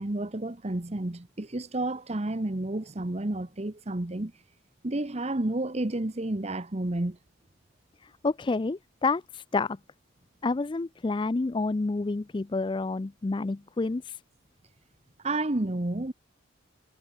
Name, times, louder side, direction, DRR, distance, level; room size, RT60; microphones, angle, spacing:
voice 1, 0.0-4.3 4.8-7.2 15.2-16.1, right 2 dB, 35° right, 1.0 m, -30 dB
voice 2, 8.2-9.8 10.4-14.2, left 3 dB, 25° left, 0.4 m, -29 dB
head